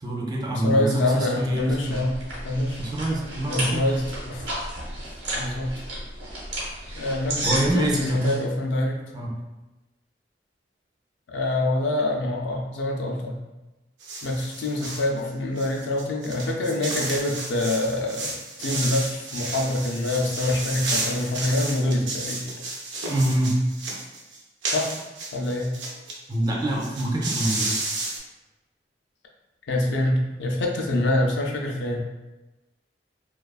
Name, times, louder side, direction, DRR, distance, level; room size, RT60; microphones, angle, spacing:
voice 1, 0.0-2.0 2.8-3.8 6.9-7.0 7.4-8.4 9.1-9.3 23.0-23.6 26.3-27.8, right 1 dB, 25° right, -2 dB, 0.4 m, -26 dB
voice 2, 0.5-2.8 3.5-4.5 5.3-5.7 7.0-9.0 11.3-13.4 14.2-18.3 18.6-22.5 24.7-25.0 25.3-25.7 29.7-32.0, left 1 dB, 75° left, 1 dB, 0.4 m, -25 dB
sound 1, 1.3-8.4, right 1 dB, 70° right, 1.0 m, -33 dB
sound 2, 14.0-15.1 15.6-26.1 26.4-26.5 26.7-28.2, right 2 dB, 90° right, 0.5 m, -32 dB
2.3 x 2.3 x 2.3 m, 1.1 s
head